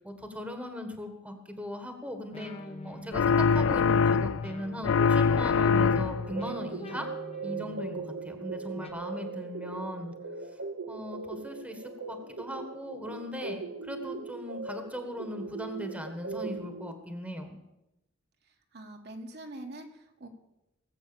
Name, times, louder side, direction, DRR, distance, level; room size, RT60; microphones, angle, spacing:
voice 1, 0.0-2.5 2.8-7.1 7.4-8.0 8.2-10.1 10.9-17.6, equal, 5° right, 6 dB, 1.5 m, -38 dB
sound 1, 2.3-8.9, left 1 dB, 30° left, 1.2 m, -45 dB
sound 2, 3.1-4.5 4.8-6.4, left 5 dB, 80° left, 0.4 m, -23 dB
sound 3, 5.7-16.9, right 4 dB, 75° right, 0.9 m, -39 dB
voice 2, 18.7-20.3, right 1 dB, 55° right, 2 dB, 1.6 m, -44 dB
18.5 x 8.0 x 6.9 m, 0.91 s
head